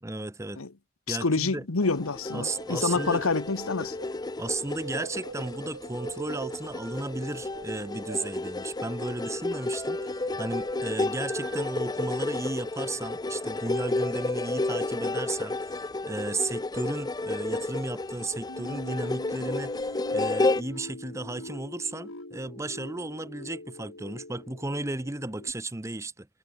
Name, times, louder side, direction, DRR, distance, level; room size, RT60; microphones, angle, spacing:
voice 1, 0.0-0.6 1.1-1.6 2.3-3.2 4.4-15.8 16.0-19.8 20.1-26.3, right 2 dB, 15° right, 0.7 m, -34 dB
voice 2, 1.1-3.9, left 3 dB, 90° left, 1.2 m, -27 dB
sound 1, 1.8-20.6, left 2 dB, 20° left, 0.5 m, -32 dB
sound 2, 2.2-12.2 12.9-13.2 15.2-15.5 16.3-16.8 17.4-17.7 18.5-19.0 19.4-20.5, right 3 dB, 80° right, 2.3 m, -46 dB
sound 3, 18.5-25.5, left 1 dB, 75° left, 4.4 m, -43 dB
head